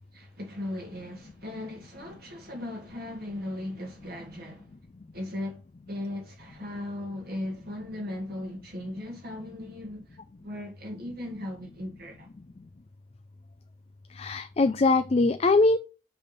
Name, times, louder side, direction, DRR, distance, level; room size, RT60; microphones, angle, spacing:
voice 1, 0.1-4.7 5.1-5.6 5.9-10.0 10.4-12.3, left 1 dB, 50° right, 2.1 m, -37 dB
voice 2, 14.2-15.8, left 3 dB, 30° left, 0.3 m, -22 dB
7.2 x 3.5 x 5.6 m
head